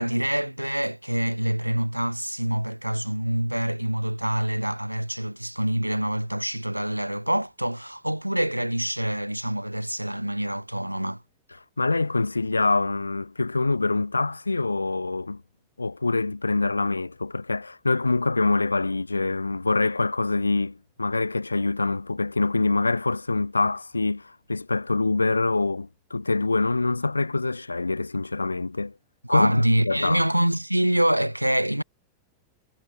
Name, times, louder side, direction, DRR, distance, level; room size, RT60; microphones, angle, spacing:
voice 1, 0.0-11.2 29.2-31.8, right 1 dB, 90° right, 4.5 m, -25 dB
voice 2, 11.8-15.4 15.8-28.9 29.3-30.2, left 3 dB, 80° left, 2.9 m, -25 dB
figure-of-eight pair, 90°, 0 cm